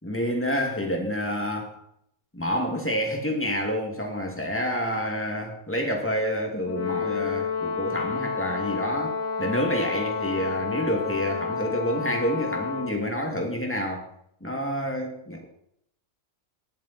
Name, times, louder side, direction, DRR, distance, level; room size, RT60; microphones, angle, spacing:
voice 1, 0.0-1.8 2.3-14.1 14.4-15.4, equal, 10° left, 1 dB, 2.4 m, -28 dB
Brass instrument, 6.7-13.0, left 5 dB, 55° left, 1.8 m, -30 dB
20.0 x 7.4 x 4.3 m, 0.72 s
omnidirectional pair, 1.7 m